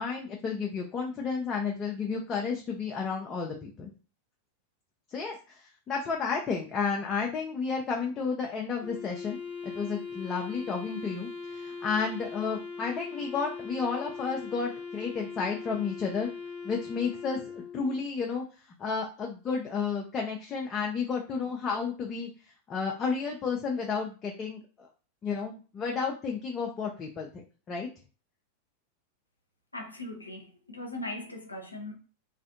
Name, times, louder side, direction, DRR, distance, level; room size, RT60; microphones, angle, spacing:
voice 1, 0.0-3.9 5.1-9.4 9.6-16.3 16.6-18.4 18.8-22.3 22.7-24.9 25.2-27.3 27.7-27.9, left 5 dB, 25° left, 0.4 m, -32 dB
Wind instrument woodwind instrument, 8.8-18.1, left 5 dB, 45° left, 0.9 m, -40 dB
voice 2, 29.7-31.9, left 1 dB, 80° left, 0.5 m, -39 dB
2.5 x 2.4 x 2.5 m
figure-of-eight pair, 90°, 0 cm